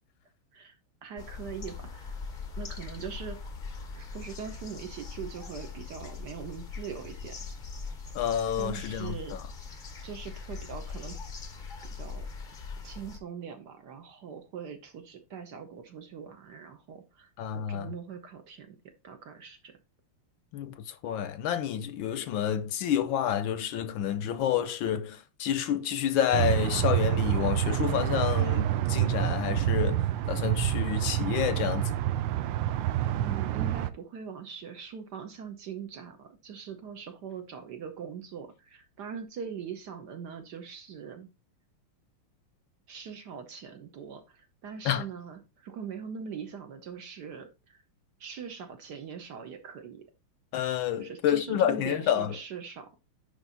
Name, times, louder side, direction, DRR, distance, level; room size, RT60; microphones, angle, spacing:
voice 1, 1.0-2.1 2.6-3.5 4.0-7.4 8.6-9.4 10.0-11.2 11.9-12.3 12.8-17.3 17.5-18.8 19.0-19.7 33.1-41.3 42.9-47.8 48.2-50.0 51.0-52.9, right 7 dB, 60° right, 1.4 m, -42 dB
sound 1, 1.2-13.2, left 4 dB, 50° left, 0.5 m, -41 dB
voice 2, 8.1-9.4 17.4-17.9 20.5-31.9 44.8-45.0 50.5-52.4, left 10 dB, 75° left, 1.3 m, -29 dB
sound 2, 26.3-33.9, right 12 dB, 75° right, 1.1 m, -27 dB
10.0 x 3.4 x 4.0 m
omnidirectional pair, 2.4 m